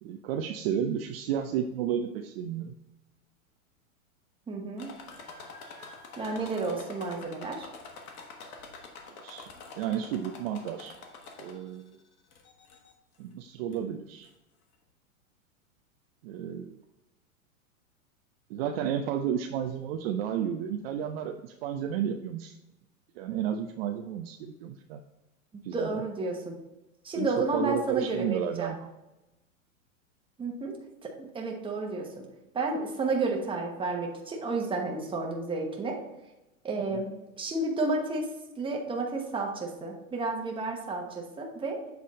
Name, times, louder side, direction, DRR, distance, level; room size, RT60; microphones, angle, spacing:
voice 1, 0.0-2.7 9.2-9.5 9.8-10.9 11.4-12.0 13.2-14.3 16.2-16.8 18.5-22.6 23.2-25.0 25.6-26.0 27.1-28.9 36.9-37.0, right 9 dB, 45° right, 5 dB, 0.5 m, -32 dB
voice 2, 4.5-4.9 6.2-7.7 25.5-26.6 27.0-28.7 30.4-30.8 31.0-32.2 32.5-36.0 36.6-38.3 38.6-41.9, right 3 dB, 10° right, 1 dB, 1.1 m, -31 dB
sound 1, 4.8-11.8 12.3-12.9 13.7-13.8 14.2-14.3, left 4 dB, 80° left, 1.4 m, -46 dB
7.6 x 3.6 x 4.2 m, 0.97 s
hypercardioid pair, 125°, 42 cm